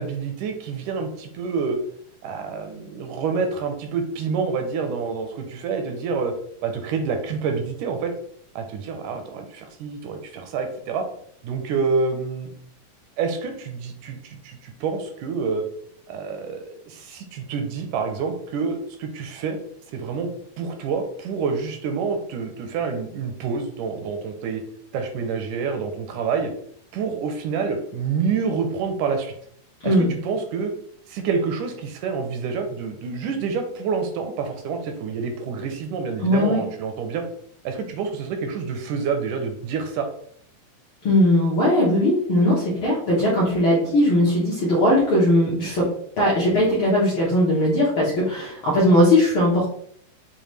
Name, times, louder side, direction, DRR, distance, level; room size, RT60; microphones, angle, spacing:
voice 1, 0.0-1.8 2.2-6.3 6.6-8.1 8.6-11.0 11.4-12.5 13.2-15.6 16.1-19.6 19.9-20.3 20.6-24.6 24.9-26.5 26.9-29.3 29.8-30.7 31.1-37.2 37.6-40.1, right 5 dB, 80° right, 5 dB, 2.0 m, -27 dB
voice 2, 29.8-30.1 36.2-36.6 41.0-45.9 46.2-49.7, left 1 dB, 65° left, -6 dB, 1.3 m, -19 dB
7.1 x 2.4 x 3.1 m, 0.64 s
omnidirectional pair, 3.9 m